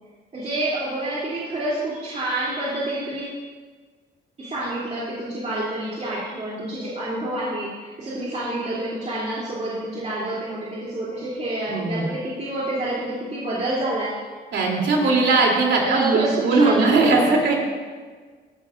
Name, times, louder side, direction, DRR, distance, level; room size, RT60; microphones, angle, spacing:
voice 1, 0.3-3.4 4.4-14.2 15.0-15.2 15.8-16.8, right 1 dB, 35° right, -8 dB, 3.3 m, -28 dB
voice 2, 11.7-12.1 14.5-17.6, right 3 dB, 65° right, -1 dB, 3.3 m, -19 dB
17.0 x 12.0 x 2.6 m, 1.5 s
cardioid pair, 90°, 20 cm